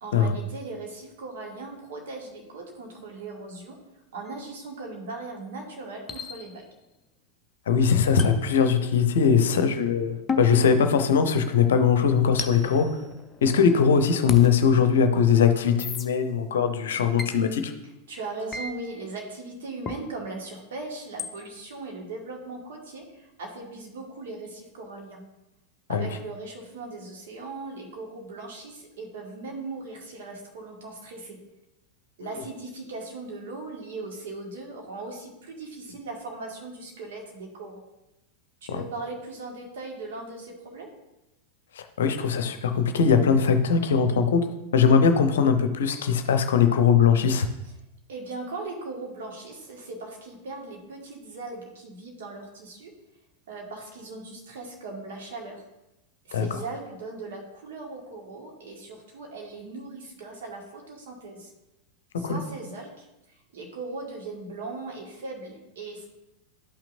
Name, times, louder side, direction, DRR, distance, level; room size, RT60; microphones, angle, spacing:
voice 1, 0.0-3.8 4.1-6.6 18.1-25.2 25.9-31.4 32.2-37.8 38.6-40.9 48.1-52.9 53.5-55.6 56.3-61.5 62.2-66.1, right 3 dB, 60° right, 0 dB, 1.9 m, -39 dB
sound 1, 4.3-4.4 6.1-6.9 8.2-9.3 10.3-11.6 12.4-13.7 14.3-14.5 15.8-16.1 17.2-17.4 18.5-18.7 19.9-20.0 21.2-21.4, left 4 dB, 20° left, 0.7 m, -35 dB
voice 2, 7.7-12.9 13.4-17.7 25.9-26.1 32.2-32.4 38.7-38.8 41.8-44.4 44.7-47.5 56.3-56.5 62.2-62.4, left 6 dB, 60° left, 8 dB, 0.7 m, -21 dB
11.5 x 5.8 x 2.6 m, 0.93 s
figure-of-eight pair, 90°, 0 cm